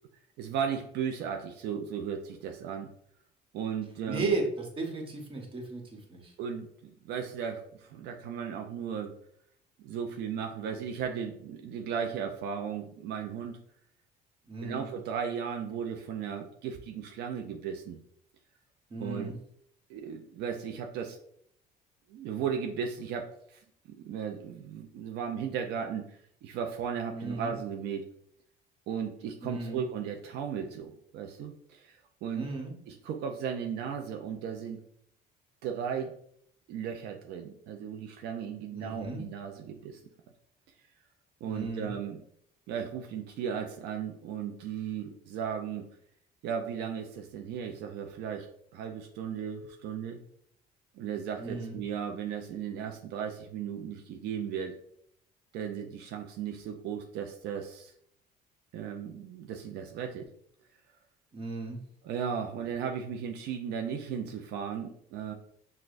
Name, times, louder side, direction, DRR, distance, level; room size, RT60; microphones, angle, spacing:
voice 1, 0.4-2.9 3.5-4.3 6.4-9.1 9.8-13.6 14.6-18.0 19.0-19.3 19.9-21.2 22.1-23.6 24.0-28.1 28.9-32.5 32.9-34.8 35.6-36.2 36.7-40.0 41.4-42.2 42.7-45.9 46.4-50.2 50.9-54.7 55.5-57.9 58.7-60.2 62.0-65.3, right 7 dB, 80° right, 3 dB, 0.4 m, -36 dB
voice 2, 4.1-5.8 6.1-6.3 14.5-14.8 18.9-19.3 27.1-27.5 29.4-29.8 32.3-32.7 38.7-39.2 41.5-41.9 51.4-51.8 61.3-61.8, right 3 dB, 30° right, 1 dB, 1.1 m, -35 dB
6.1 x 2.1 x 2.5 m, 0.67 s
cardioid pair, 110°, 17 cm